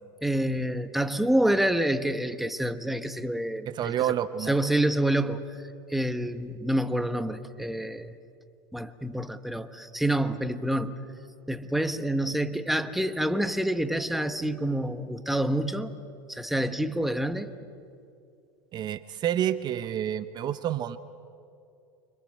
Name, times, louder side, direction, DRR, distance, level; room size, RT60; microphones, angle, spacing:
voice 1, 0.2-3.9 4.5-5.5 5.9-8.1 8.7-11.0 11.5-15.9 16.3-17.5, right 1 dB, ahead, 10 dB, 1.3 m, -27 dB
voice 2, 3.7-4.5 18.7-21.0, right 11 dB, 40° right, 13 dB, 0.9 m, -29 dB
29.5 x 25.5 x 7.7 m, 2.4 s
supercardioid pair, 115°, 12 cm